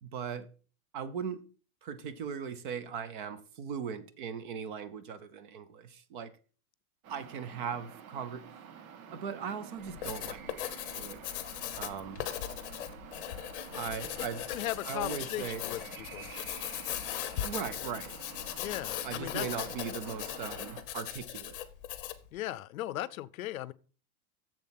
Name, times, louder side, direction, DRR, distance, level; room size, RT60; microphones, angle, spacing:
voice 1, 0.0-0.5 0.9-1.4 1.8-6.3 7.1-8.4 9.1-11.2 11.8-12.2 13.7-14.4 14.9-15.6 17.4-18.1 19.0-21.6, right 7 dB, 35° right, 0.7 m, -39 dB
sound 1, 7.0-20.8, right 7 dB, 65° right, 1.5 m, -49 dB
Writing, 9.8-22.3, left 12 dB, 35° left, 0.8 m, -39 dB
voice 2, 14.2-16.3 18.5-19.5 22.3-23.7, left 14 dB, 65° left, 0.7 m, -38 dB
7.4 x 7.3 x 5.8 m
supercardioid pair, 180°, 45 cm